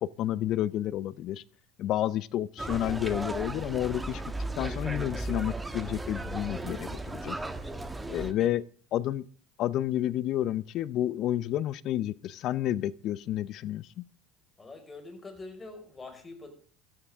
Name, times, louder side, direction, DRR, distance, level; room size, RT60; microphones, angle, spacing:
voice 1, 0.0-1.4 1.8-4.2 4.6-7.4 8.1-8.6 8.9-9.2 9.6-14.0, left 12 dB, 60° left, 0.6 m, -30 dB
sound 1, 2.6-8.3, right 2 dB, 15° right, 1.5 m, -35 dB
voice 2, 14.6-16.5, left 3 dB, 25° left, 5.0 m, -44 dB
16.5 x 12.5 x 3.6 m
hypercardioid pair, 75°, 0 cm